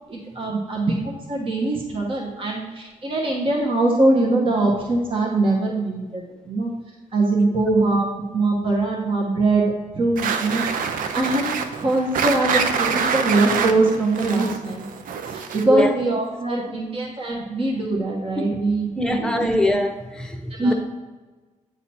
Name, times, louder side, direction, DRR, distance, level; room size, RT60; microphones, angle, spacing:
voice 1, 0.1-6.7 7.1-8.0 8.3-10.7 11.1-14.8 15.3-19.5 20.6-20.7, right 2 dB, 40° right, -3 dB, 1.3 m, -22 dB
sound 1, 10.2-15.8, right 6 dB, 85° right, 0.6 m, -25 dB
voice 2, 15.6-15.9 18.4-18.5 19.0-20.7, left 1 dB, 5° left, 4 dB, 0.9 m, -22 dB
8.7 x 4.0 x 4.3 m, 1.3 s
cardioid pair, 100°, 14 cm